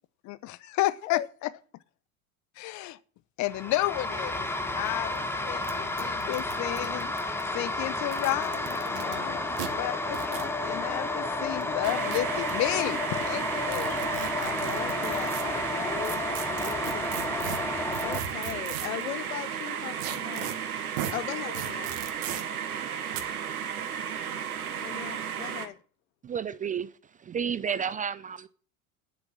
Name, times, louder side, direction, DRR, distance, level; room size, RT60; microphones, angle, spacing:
voice 1, 0.2-1.5 2.6-3.0 3.4-4.5 4.7-14.1, left 16 dB, 40° left, 1.0 m, -32 dB
sound 1, 3.5-18.2, left 2 dB, 5° left, 1.5 m, -31 dB
sound 2, 4.9-5.0 5.2-5.3 5.6-5.7 6.0-7.4 8.0-9.2 9.6-9.7 10.1-10.5 11.6-12.5 13.7-15.4 16.0-19.0 20.0-20.5 21.0-21.1 21.5-22.4 23.1-23.2, right 10 dB, 60° right, 2.1 m, -37 dB
voice 2, 8.9-9.5 14.4-17.3 18.0-20.5 21.1-21.9 24.8-25.8, left 13 dB, 65° left, 1.0 m, -38 dB
sound 3, 11.8-25.7, right 8 dB, 75° right, 1.6 m, -34 dB
voice 3, 26.2-26.9 27.2-28.5, right 7 dB, 20° right, 0.6 m, -31 dB
9.8 x 8.1 x 8.8 m
figure-of-eight pair, 80°, 44 cm